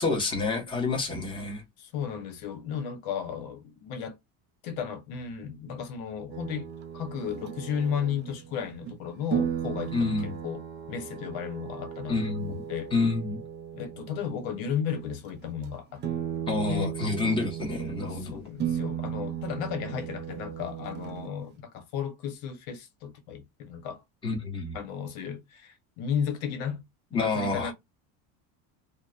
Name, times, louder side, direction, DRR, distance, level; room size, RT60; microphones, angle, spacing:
voice 1, 0.0-1.6 9.9-10.4 12.1-12.6 12.9-13.4 16.5-18.4 24.2-24.8 27.1-27.7, left 3 dB, 10° left, 0.9 m, -28 dB
voice 2, 1.8-4.2 4.6-6.7 6.9-10.6 10.9-12.9 13.7-16.0 16.7-16.9 18.1-24.0 24.7-26.8 27.1-27.7, left 7 dB, 85° left, 1.0 m, -34 dB
sound 1, 6.3-9.0 9.3-15.2 15.4-15.7 16.0-18.2 18.6-21.5, right 9 dB, 30° right, 0.4 m, -36 dB
2.8 x 2.1 x 2.3 m
cardioid pair, 145°, 40 cm